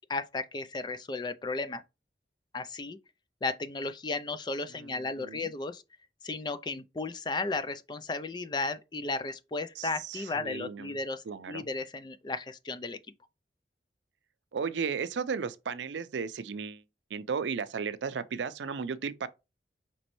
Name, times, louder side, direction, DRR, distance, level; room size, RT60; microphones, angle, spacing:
voice 1, 0.1-1.8 2.5-3.0 3.4-5.8 6.2-13.0, left 3 dB, 25° left, 0.3 m, -34 dB
voice 2, 5.2-5.5 9.8-11.0 11.3-11.6 14.5-16.8 17.1-19.3, right 6 dB, 90° right, 0.5 m, -34 dB
5.2 x 3.0 x 3.0 m
head